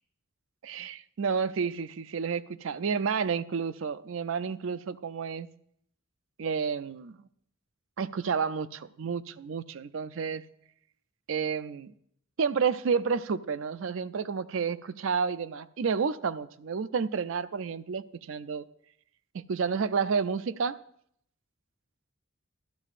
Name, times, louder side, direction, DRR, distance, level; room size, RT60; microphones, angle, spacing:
voice 1, 0.9-5.5 6.4-7.2 8.0-10.4 11.3-11.9 12.4-18.6 19.3-20.8, right 6 dB, 70° right, 14 dB, 0.4 m, -30 dB
13.0 x 12.5 x 2.5 m, 0.69 s
head